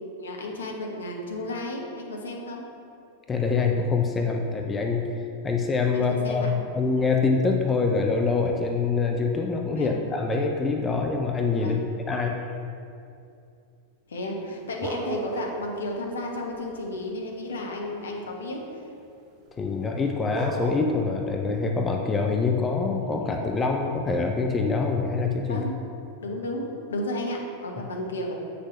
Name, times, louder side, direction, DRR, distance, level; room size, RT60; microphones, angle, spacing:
voice 1, 0.2-2.6 5.9-6.5 9.7-10.0 11.6-11.8 14.1-18.8 25.5-25.7 26.2-28.3, left 1 dB, 65° left, 1 dB, 0.9 m, -33 dB
voice 2, 3.3-5.1 5.4-11.8 12.1-12.4 19.6-25.7, left 4 dB, 20° left, 2 dB, 0.5 m, -25 dB
sound 1, 14.4-15.7 16.0-18.4 20.0-20.1 20.3-20.8, right 3 dB, 30° right, 0.9 m, -35 dB
7.8 x 5.9 x 3.1 m, 2.5 s
figure-of-eight pair, 90°, 0 cm